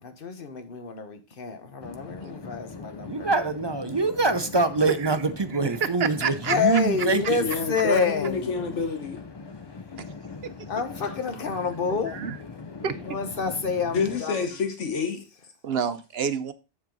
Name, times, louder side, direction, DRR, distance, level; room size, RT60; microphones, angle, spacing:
voice 1, 0.0-3.3 6.5-8.8 10.7-12.2 13.1-14.4, left 5 dB, 50° left, 1.3 m, -28 dB
sound 1, 1.8-14.2, left 4 dB, 35° left, 0.4 m, -41 dB
voice 2, 3.0-7.5, right 3 dB, 30° right, 0.5 m, -25 dB
voice 3, 5.8-6.6 10.0-10.1 10.4-10.5 12.1-12.4 12.8-13.0 15.6-16.5, right 7 dB, 65° right, 0.8 m, -28 dB
voice 4, 7.4-9.2 11.0-11.1 13.9-15.2, left 5 dB, 85° left, 1.5 m, -28 dB
7.4 x 7.2 x 3.9 m
omnidirectional pair, 1.2 m